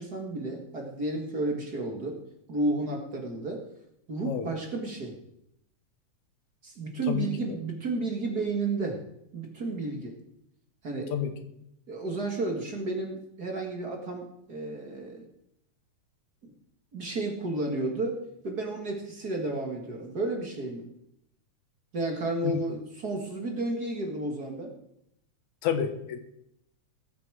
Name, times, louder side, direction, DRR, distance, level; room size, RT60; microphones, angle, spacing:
voice 1, 0.0-2.2 2.5-3.6 4.1-5.2 6.6-9.0 9.3-10.2 10.8-11.1 11.9-15.3 16.4-16.5 16.9-20.9 21.9-24.7, right 2 dB, 35° right, 2 dB, 2.1 m, -32 dB
voice 2, 7.1-7.6 11.1-11.3 22.4-22.6 25.6-26.2, left 8 dB, 85° left, 8 dB, 2.7 m, -30 dB
20.5 x 8.2 x 4.9 m, 0.77 s
omnidirectional pair, 3.3 m